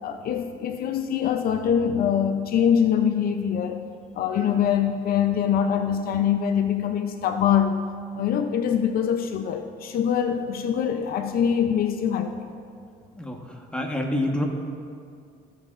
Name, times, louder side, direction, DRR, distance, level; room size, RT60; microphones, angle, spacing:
voice 1, 0.0-3.8 4.1-7.8 8.1-12.5, left 8 dB, 60° left, 7 dB, 0.6 m, -24 dB
voice 2, 13.1-14.4, left 1 dB, 5° left, 1 dB, 1.2 m, -28 dB
16.0 x 8.5 x 2.5 m, 2.2 s
cardioid pair, 110°, 17 cm